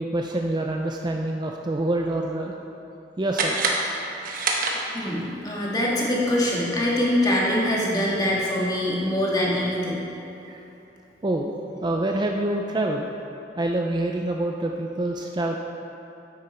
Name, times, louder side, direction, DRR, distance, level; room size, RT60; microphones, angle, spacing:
voice 1, 0.0-2.5 3.2-3.6 10.4-10.6 11.2-11.5 11.8-13.1 13.6-15.6, right 1 dB, 25° right, 1 dB, 0.4 m, -26 dB
sound 1, 3.3-5.3, right 3 dB, 50° right, 1.1 m, -26 dB
voice 2, 4.9-10.0, left 1 dB, 20° left, -5 dB, 1.8 m, -24 dB
9.6 x 8.9 x 4.3 m, 3.0 s
head